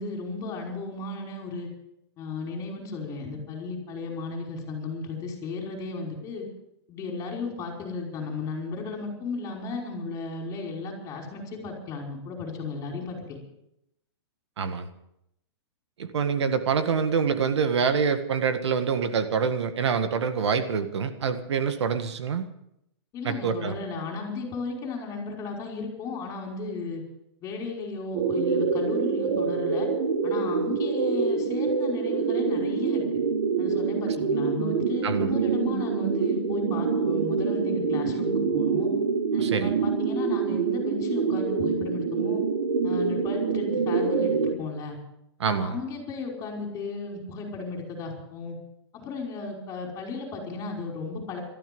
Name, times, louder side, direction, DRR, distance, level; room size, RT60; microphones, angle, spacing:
voice 1, 0.0-1.7 2.2-6.5 6.9-13.4 23.1-27.0 27.4-29.9 30.2-33.1 33.6-38.9 39.3-42.4 42.8-45.0 45.5-48.6 48.9-51.4, left 4 dB, 25° left, 1 dB, 5.2 m, -35 dB
voice 2, 14.6-14.9 16.0-22.5 23.2-23.8 35.0-35.3 39.4-39.7 45.4-45.7, right 6 dB, 85° right, 9 dB, 1.7 m, -26 dB
sound 1, 28.1-44.5, right 5 dB, 70° right, 1.8 m, -26 dB
18.5 x 13.5 x 5.4 m, 0.80 s
hypercardioid pair, 155°, 14 cm